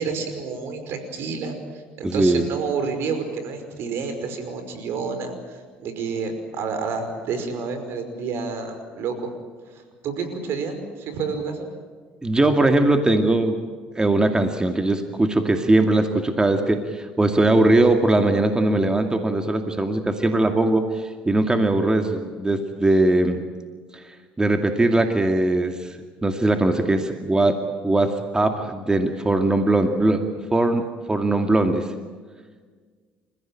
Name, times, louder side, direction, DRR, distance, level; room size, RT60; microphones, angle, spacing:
voice 1, 0.0-9.3 9.7-11.7, right 5 dB, 65° right, 8 dB, 5.4 m, -29 dB
voice 2, 2.0-2.4 12.2-13.6 14.0-23.4 23.9-24.0 24.4-26.0 26.2-27.6 27.8-30.2 30.5-31.9, right 2 dB, 15° right, 5 dB, 2.3 m, -20 dB
29.0 x 16.0 x 9.0 m, 1.5 s
supercardioid pair, 70°, 4 cm